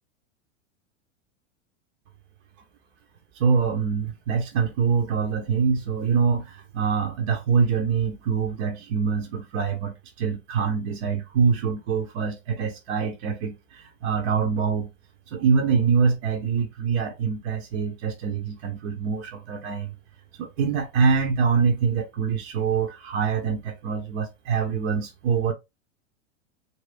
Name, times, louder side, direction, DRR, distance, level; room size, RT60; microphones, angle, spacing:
voice 1, 3.3-14.9 15.3-19.9 20.4-25.5, right 6 dB, 60° right, 0.9 m, -24 dB
2.8 x 2.7 x 3.3 m
hypercardioid pair, 105°, 36 cm